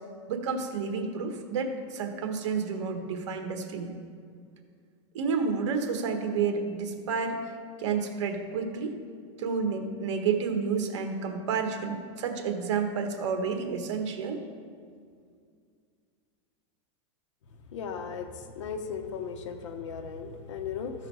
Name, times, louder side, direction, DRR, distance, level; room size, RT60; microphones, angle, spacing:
voice 1, 0.3-3.9 5.1-7.5 7.8-8.9 9.4-14.4, right 5 dB, 70° right, 5 dB, 1.3 m, -30 dB
voice 2, 17.7-18.3 18.6-20.9, left 6 dB, 75° left, 7 dB, 1.0 m, -36 dB
13.5 x 4.9 x 4.7 m, 2.2 s
supercardioid pair, 150°, 16 cm